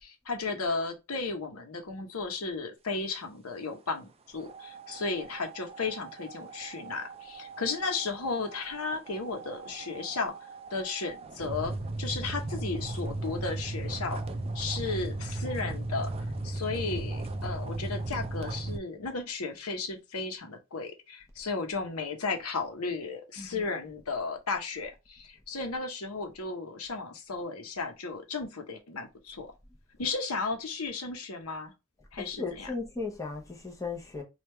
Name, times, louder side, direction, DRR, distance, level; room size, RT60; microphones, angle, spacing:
voice 1, 0.0-10.3 10.7-11.7 12.0-14.2 14.5-16.1 16.4-29.5 30.0-31.7 32.1-32.7, left 4 dB, 75° left, 0.8 m, -34 dB
sound 1, 4.4-18.8, right 2 dB, 25° right, 0.4 m, -37 dB
voice 2, 32.3-34.2, left 4 dB, 15° left, 0.8 m, -36 dB
3.2 x 2.4 x 4.4 m
head